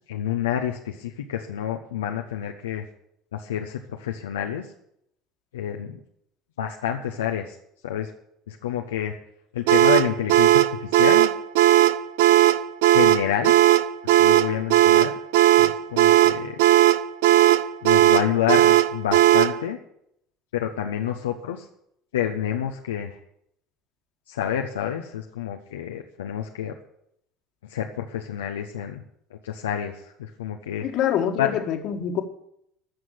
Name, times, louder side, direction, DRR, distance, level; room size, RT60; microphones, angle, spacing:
voice 1, 0.1-2.8 3.3-4.7 5.5-6.0 6.6-7.6 7.8-8.1 8.5-9.2 9.5-11.3 12.9-13.5 14.1-15.2 15.6-16.6 17.8-19.8 20.5-21.7 22.1-23.2 24.3-26.8 27.6-29.0 29.3-30.9 31.4-31.6, left 10 dB, 80° left, 2 dB, 0.9 m, -28 dB
sound 1, 9.7-19.6, right 14 dB, 70° right, 0.6 m, -17 dB
voice 2, 30.8-32.2, left 9 dB, 55° left, 6 dB, 1.8 m, -25 dB
14.5 x 6.2 x 9.9 m, 0.73 s
hypercardioid pair, 65°, 0 cm